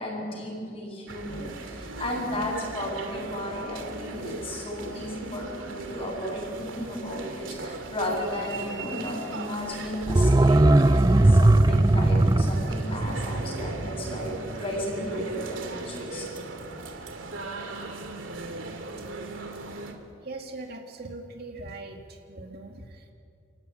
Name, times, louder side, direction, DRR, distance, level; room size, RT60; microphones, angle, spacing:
voice 1, 0.0-16.3, left 1 dB, 30° left, -1 dB, 7.3 m, -34 dB
sound 1, 1.1-19.9, right 2 dB, 90° right, 2.7 m, -38 dB
sound 2, 10.0-14.8 15.1-15.2, right 2 dB, 20° right, 0.5 m, -20 dB
voice 2, 20.2-23.1, right 2 dB, 55° right, 2 dB, 2.4 m, -41 dB
29.5 x 15.5 x 9.7 m, 2.5 s
head